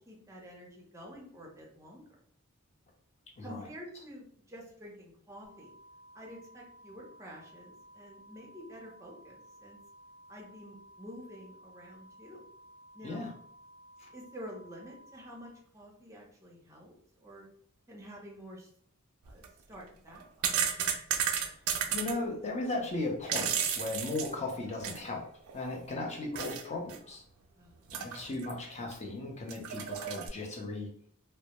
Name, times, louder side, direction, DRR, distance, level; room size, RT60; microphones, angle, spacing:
voice 1, 0.0-2.1 3.4-5.7 6.1-9.8 10.3-12.5 12.9-13.2 14.1-17.5 17.9-18.7 19.2-20.5 27.5-28.1, equal, 15° right, -2 dB, 0.6 m, -49 dB
voice 2, 3.4-3.7 13.0-13.3 21.9-25.2 25.5-27.2 27.9-30.9, left 2 dB, 30° left, 0 dB, 0.5 m, -36 dB
sound 1, 5.4-15.5, equal, 65° left, 1.1 m, -56 dB
sound 2, 19.2-19.5 20.1-22.1 23.0-25.1 25.5-25.6 26.3-26.6 26.9-27.0 27.9-28.5 28.9-29.0 29.5-30.3, right 8 dB, 70° right, 0.3 m, -33 dB
2.1 x 2.0 x 2.8 m, 0.63 s
head